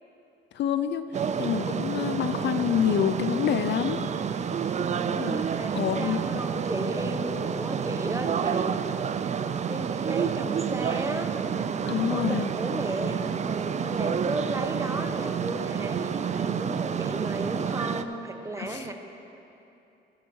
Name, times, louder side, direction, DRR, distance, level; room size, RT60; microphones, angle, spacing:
voice 1, 0.5-4.1 5.2-5.4 5.7-6.2 11.9-12.5 18.6-18.9, left 9 dB, 60° left, 11 dB, 0.5 m, -27 dB
sound 1, 1.1-18.0, right 7 dB, 35° right, 0.4 m, -29 dB
voice 2, 4.7-8.7 9.2-18.9, right 1 dB, 15° right, 4 dB, 0.9 m, -34 dB
16.0 x 5.8 x 4.6 m, 2.8 s
cardioid pair, 90°, 20 cm